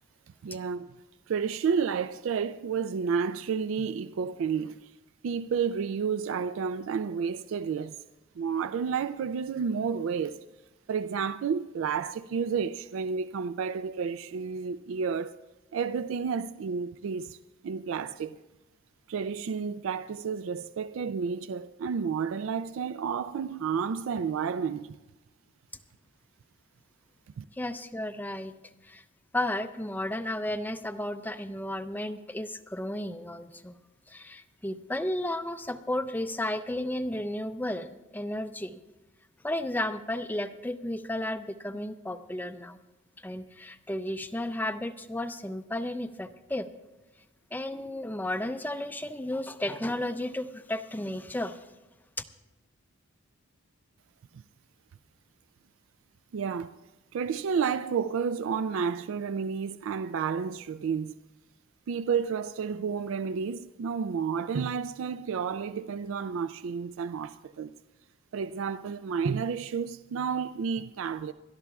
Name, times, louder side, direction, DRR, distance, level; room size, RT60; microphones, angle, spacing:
voice 1, 0.4-0.9 1.3-4.9 5.2-8.0 8.4-10.4 10.9-15.4 15.7-17.4 17.6-18.4 19.1-25.0 27.4-27.5 56.3-56.7 57.1-61.1 61.9-67.7 68.3-71.3, right 6 dB, 70° right, 0.3 m, -31 dB
voice 2, 27.5-28.5 28.8-29.0 29.3-33.8 34.1-38.8 39.4-42.8 43.2-46.7 47.5-51.7, left 1 dB, 10° left, 0.4 m, -33 dB
28.0 x 13.0 x 2.3 m
head